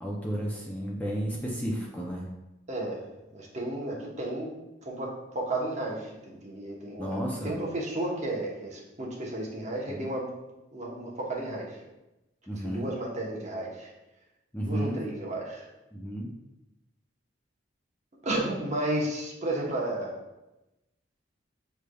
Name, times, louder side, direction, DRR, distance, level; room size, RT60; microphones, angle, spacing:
voice 1, 0.0-2.3 7.0-7.6 9.9-10.0 12.5-12.9 14.5-15.0 15.9-16.3, equal, 10° left, -3 dB, 0.5 m, -32 dB
voice 2, 2.7-3.0 3.3-4.5 4.8-10.3 10.7-11.7 12.6-13.9 14.7-15.6 18.2-20.1, right 1 dB, 40° right, -3 dB, 0.9 m, -33 dB
6.3 x 3.3 x 2.3 m, 0.97 s
head